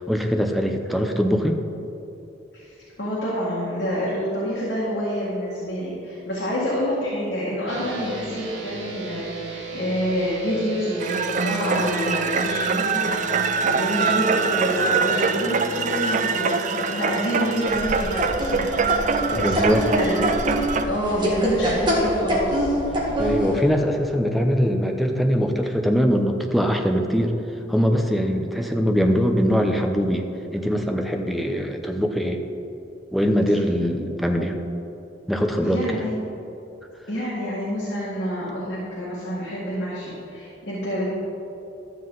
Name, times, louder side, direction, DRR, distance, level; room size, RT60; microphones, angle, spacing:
voice 1, 0.0-1.6 19.3-19.8 20.7-20.8 23.2-27.3 27.7-30.3 30.5-32.4 33.1-34.6 35.3-36.0, equal, ahead, 3 dB, 0.6 m, -22 dB
voice 2, 2.5-18.9 19.3-22.8 35.6-36.2 37.1-41.1, equal, 60° left, -8 dB, 2.0 m, -27 dB
sound 1, 7.6-17.6, equal, 70° right, 1.3 m, -36 dB
sound 2, 11.0-20.8, right 5 dB, 40° right, 0.4 m, -24 dB
sound 3, 17.7-23.6, equal, 25° right, 1.8 m, -25 dB
12.5 x 7.6 x 3.9 m, 2.9 s
head